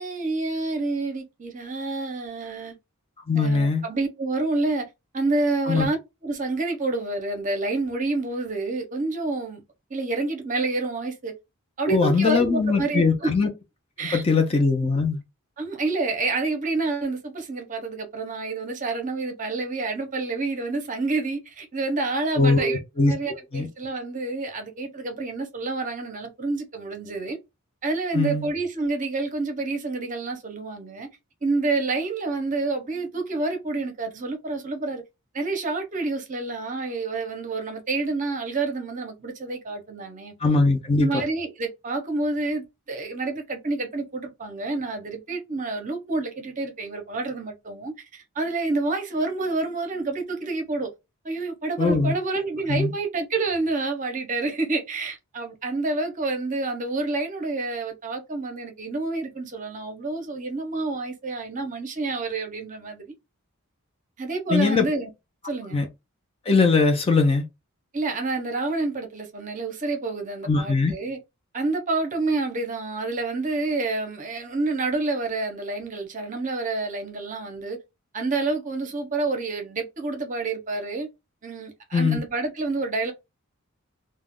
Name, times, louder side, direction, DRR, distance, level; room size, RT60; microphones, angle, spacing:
voice 1, 0.0-2.8 3.3-4.9 5.1-6.0 6.2-9.6 9.9-11.3 11.8-13.3 14.0-14.4 15.6-27.4 27.8-31.1 31.4-35.0 35.3-40.3 41.0-50.9 51.2-63.0 64.2-65.1 65.4-65.8 67.9-71.2 71.5-77.8 78.1-81.1 81.4-83.1, right 3 dB, 35° right, 0.6 m, -28 dB
voice 2, 3.3-3.8 5.7-5.9 11.9-13.5 14.1-15.2 22.4-23.1 23.5-23.7 28.1-28.5 40.4-41.2 51.8-52.1 52.7-52.9 64.5-64.9 65.7-65.8 66.5-67.4 70.4-70.9 81.9-82.2, left 4 dB, 25° left, 0.4 m, -21 dB
2.3 x 2.1 x 3.5 m
head